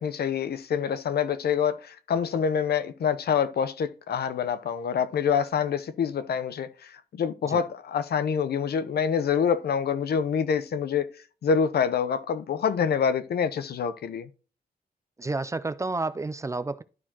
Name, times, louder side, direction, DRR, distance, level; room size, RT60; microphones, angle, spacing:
voice 1, 0.0-11.1 11.4-14.3, left 7 dB, 75° left, 0.8 m, -26 dB
voice 2, 15.2-16.8, right 3 dB, 20° right, 0.4 m, -30 dB
12.5 x 4.5 x 2.8 m
wide cardioid pair, 160°, 16 cm